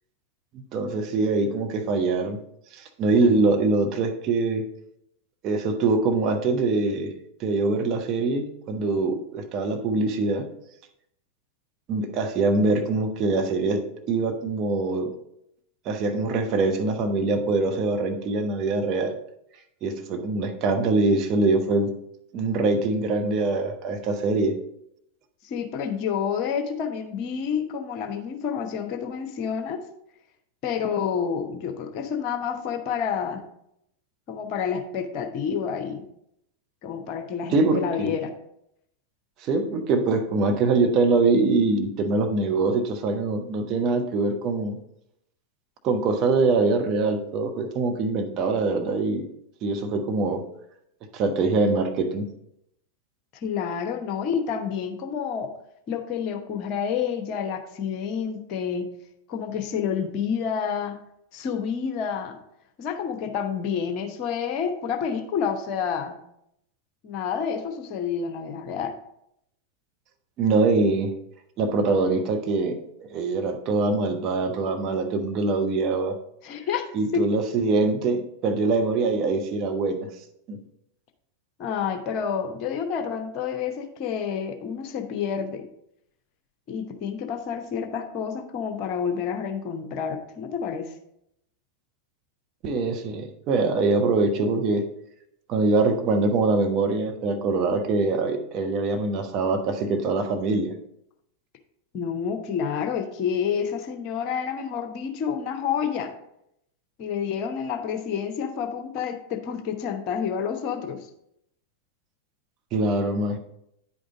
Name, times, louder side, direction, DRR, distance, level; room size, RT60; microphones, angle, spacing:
voice 1, 0.5-2.4 2.7-4.7 5.4-7.1 7.4-10.5 11.9-15.1 15.8-19.2 19.8-21.9 22.3-24.5 37.5-38.1 39.4-44.8 45.8-49.2 49.6-50.4 51.1-52.3 70.4-71.1 71.6-72.8 73.1-76.1 76.9-80.1 80.5-80.6 92.6-94.8 95.5-100.7 112.7-113.4, right 3 dB, 35° right, 4 dB, 1.0 m, -23 dB
voice 2, 25.4-29.8 30.6-33.4 34.3-36.0 36.8-38.3 53.3-55.5 55.9-58.9 59.3-61.0 61.3-62.4 62.8-66.2 67.0-68.9 76.4-76.9 81.6-85.6 86.7-90.9 101.9-106.1 107.0-111.0, left 7 dB, 40° left, 6 dB, 1.0 m, -29 dB
9.8 x 5.1 x 3.9 m, 0.78 s
figure-of-eight pair, 90°, 0 cm